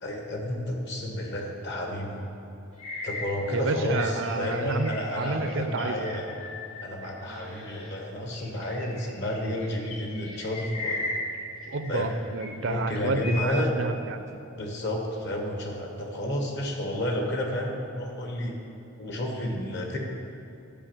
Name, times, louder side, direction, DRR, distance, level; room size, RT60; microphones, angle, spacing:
voice 1, 0.0-2.2 3.0-6.3 6.8-11.1 11.9-12.1 12.7-13.8 14.5-18.5 19.0-20.0, left 1 dB, 55° left, 1 dB, 1.5 m, -31 dB
sound 1, 2.8-7.9 8.3-12.1 12.4-13.5, left 2 dB, 85° left, 2.0 m, -38 dB
voice 2, 3.5-6.1 11.7-14.3, right 3 dB, 60° right, 10 dB, 0.5 m, -30 dB
11.0 x 5.4 x 7.4 m, 2.9 s
head